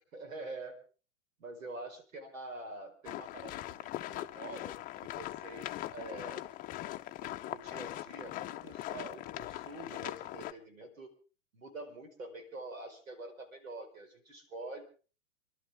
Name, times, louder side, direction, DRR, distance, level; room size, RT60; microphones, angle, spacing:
voice 1, 0.1-0.8 1.4-6.4 7.2-11.1 11.5-14.8, right 2 dB, 85° right, 7 dB, 4.7 m, -46 dB
sound 1, 3.0-10.5, left 15 dB, 20° left, 0.7 m, -41 dB
28.5 x 12.0 x 3.5 m, 0.37 s
hypercardioid pair, 130°, 39 cm